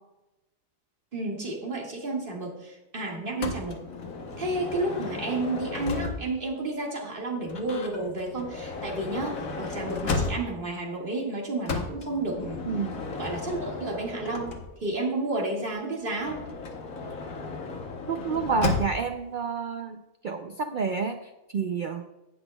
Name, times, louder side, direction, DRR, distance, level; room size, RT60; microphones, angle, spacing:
voice 1, 1.1-3.8 4.4-12.6 13.2-16.5, right 2 dB, 40° right, -1 dB, 2.0 m, -31 dB
Motor vehicle (road) / Sliding door, 3.4-6.5 7.5-10.7 11.7-15.0 16.2-19.2, left 4 dB, 75° left, 1.4 m, -34 dB
voice 2, 12.7-13.0 18.1-21.2 21.5-22.0, right 5 dB, 75° right, 6 dB, 0.4 m, -29 dB
16.5 x 6.1 x 2.2 m, 0.96 s
omnidirectional pair, 1.4 m